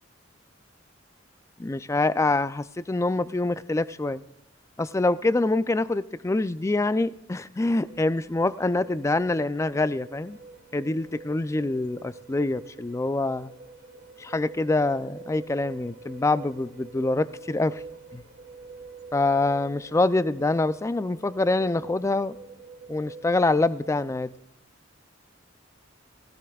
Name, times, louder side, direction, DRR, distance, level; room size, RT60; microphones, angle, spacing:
voice 1, 1.6-4.2 4.8-10.4 10.7-13.5 14.2-17.8 18.1-18.2 19.1-22.4 22.9-24.3, left 2 dB, 15° left, 15 dB, 0.4 m, -25 dB
sound 1, 7.8-24.2, right 3 dB, 60° right, 1.5 m, -46 dB
17.0 x 16.5 x 2.3 m, 0.82 s
head